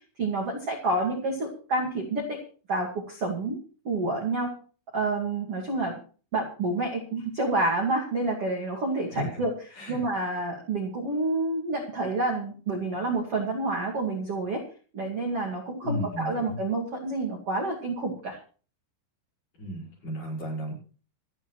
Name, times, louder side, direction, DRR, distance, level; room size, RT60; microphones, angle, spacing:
voice 1, 0.2-2.4 2.7-3.6 3.8-4.5 4.9-6.0 6.3-14.6 14.9-18.4, right 2 dB, 45° right, -1 dB, 2.2 m, -28 dB
voice 2, 9.1-9.4 9.8-10.0 15.8-16.6 19.6-20.8, equal, 45° left, 1 dB, 6.7 m, -34 dB
26.5 x 9.4 x 3.1 m, 0.39 s
omnidirectional pair, 5.7 m